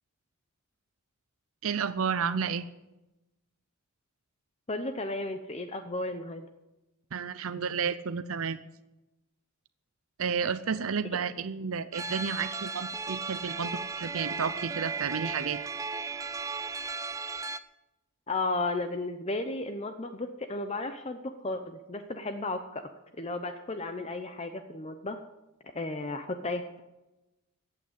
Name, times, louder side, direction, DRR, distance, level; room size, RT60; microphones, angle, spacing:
voice 1, 1.6-2.7 7.1-8.6 10.2-15.6, right 6 dB, 70° right, 13 dB, 0.6 m, -31 dB
voice 2, 4.7-6.5 18.3-22.8 23.2-25.2 25.7-26.8, left 2 dB, 30° left, 8 dB, 0.7 m, -34 dB
sound 1, 11.9-17.6, right 4 dB, 15° right, 0.4 m, -35 dB
15.0 x 8.9 x 8.1 m, 1.0 s
head